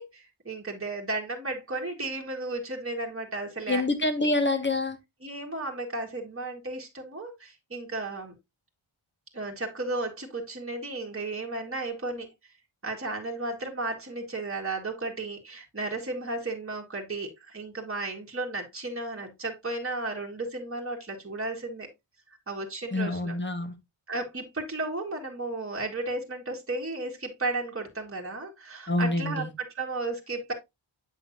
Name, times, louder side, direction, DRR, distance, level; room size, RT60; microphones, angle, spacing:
voice 1, 0.0-3.8 4.2-4.3 5.2-8.3 9.3-12.3 12.8-21.9 22.5-23.4 24.1-30.5, right 2 dB, 25° right, 1.7 m, -34 dB
voice 2, 3.7-5.0 22.9-23.7 28.9-29.5, left 2 dB, 20° left, 1.4 m, -26 dB
8.1 x 5.7 x 2.6 m
cardioid pair, 55°, 49 cm